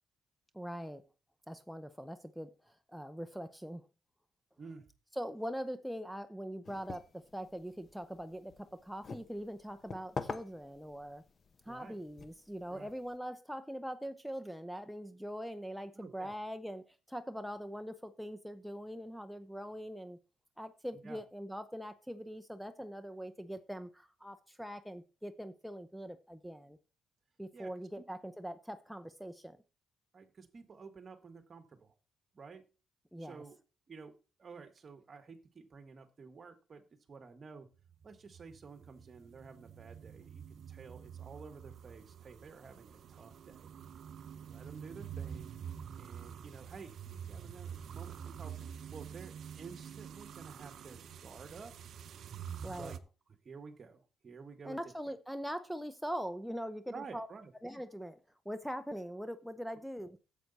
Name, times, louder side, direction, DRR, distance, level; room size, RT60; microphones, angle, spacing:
voice 1, 0.5-1.0 1.5-3.9 5.1-11.2 11.6-20.2 20.6-26.8 27.4-29.6 33.1-33.4 52.6-53.0 54.6-57.3 57.6-58.2 58.4-60.2, equal, ahead, 0.7 m, -42 dB
sound 1, 6.6-13.2, left 4 dB, 40° left, 0.9 m, -47 dB
voice 2, 11.6-12.0 12.7-12.9 15.9-16.3 20.9-21.2 27.5-28.0 30.1-31.9 32.3-32.6 33.2-33.6 33.9-37.7 38.0-43.7 44.4-45.5 46.0-51.7 52.8-53.0 53.4-54.8 55.1-55.2 56.8-57.5, right 5 dB, 40° right, 1.6 m, -51 dB
sound 2, 37.8-53.0, right 8 dB, 65° right, 0.6 m, -47 dB
9.2 x 7.9 x 4.1 m
cardioid pair, 90°, 0 cm